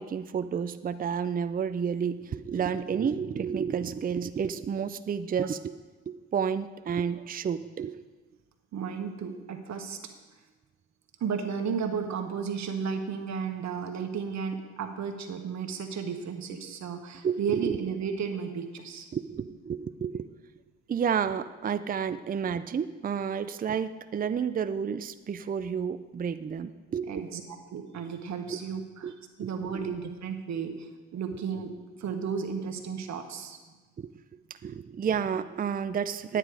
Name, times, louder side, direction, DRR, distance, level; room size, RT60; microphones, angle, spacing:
voice 1, 0.0-5.7 6.1-8.0 17.2-17.8 19.1-20.3 20.9-27.2 28.5-28.6 29.0-29.1 29.4-30.0 30.7-30.8 34.0-34.1 34.6-36.4, right 7 dB, 30° right, 12 dB, 0.5 m, -31 dB
voice 2, 8.7-10.0 11.2-19.1 27.1-33.6, right 6 dB, 65° right, 5 dB, 1.4 m, -34 dB
9.9 x 9.1 x 4.8 m, 1.3 s
supercardioid pair, 65°, 30 cm